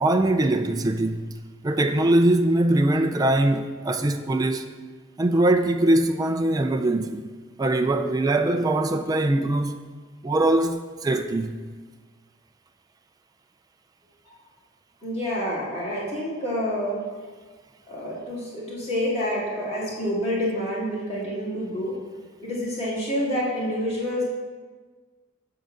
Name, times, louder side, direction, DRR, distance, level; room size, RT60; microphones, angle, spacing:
voice 1, 0.0-1.4 1.6-4.6 5.2-7.2 7.6-9.8 10.2-11.6, right 1 dB, 20° right, 0.3 m, -22 dB
voice 2, 15.0-17.0 17.9-22.0 22.4-24.2, equal, 30° left, 2.5 m, -28 dB
11.0 x 3.7 x 7.2 m
head